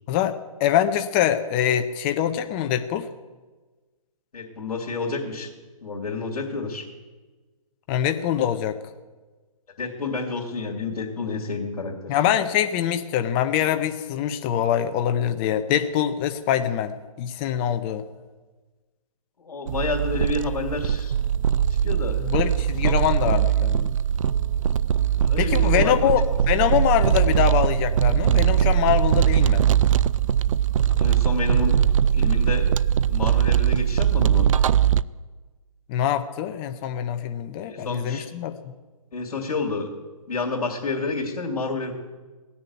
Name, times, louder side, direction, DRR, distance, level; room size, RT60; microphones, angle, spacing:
voice 1, 0.1-3.1 7.9-8.8 12.1-18.1 22.2-23.9 25.4-29.6 35.9-38.7, left 10 dB, 15° left, 8 dB, 0.4 m, -24 dB
voice 2, 4.3-5.5 5.8-6.9 9.8-12.2 19.4-21.1 21.8-22.3 22.8-22.9 23.2-23.4 25.2-26.1 26.5-26.6 30.9-31.8 32.1-32.7 33.1-34.5 37.6-38.3 39.1-39.9 40.3-41.9, left 3 dB, 75° left, -2 dB, 2.5 m, -29 dB
sound 1, 19.7-35.0, right 9 dB, 60° right, 0.4 m, -21 dB
17.0 x 7.0 x 9.3 m, 1.3 s
hypercardioid pair, 155°, 19 cm